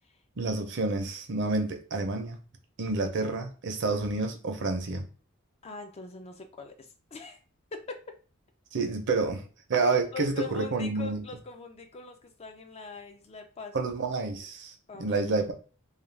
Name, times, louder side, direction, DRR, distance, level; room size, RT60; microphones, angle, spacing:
voice 1, 0.4-2.4 2.8-5.0 8.7-9.4 9.7-11.2 13.7-14.7 15.0-15.5, right 3 dB, 60° right, 5 dB, 0.6 m, -29 dB
voice 2, 5.6-7.4 7.7-7.9 10.1-13.8 14.9-15.2, left 4 dB, 30° left, 5 dB, 0.4 m, -42 dB
2.4 x 2.2 x 3.2 m, 0.37 s
head